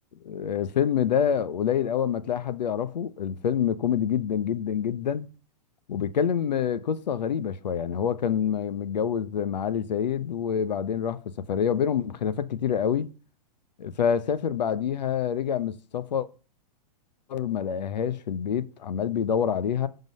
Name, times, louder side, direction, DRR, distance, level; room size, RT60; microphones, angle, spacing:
voice 1, 0.2-5.3 5.9-13.1 13.8-16.3 17.3-19.9, left 8 dB, 90° left, 0.9 m, -27 dB
10.5 x 3.9 x 6.3 m
hypercardioid pair, 150°, 21 cm